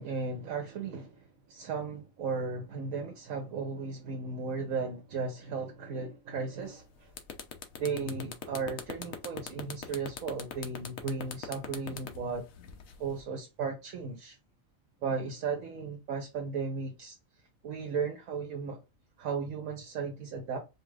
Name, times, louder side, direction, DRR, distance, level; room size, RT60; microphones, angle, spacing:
voice 1, 0.0-7.1 7.8-12.5 13.0-14.4 15.0-17.1 17.6-18.8 19.2-20.6, right 5 dB, 80° right, 1.2 m, -35 dB
sound 1, 6.7-6.8 7.1-13.2, left 7 dB, 75° left, 1.2 m, -41 dB
4.9 x 2.4 x 3.2 m
omnidirectional pair, 1.4 m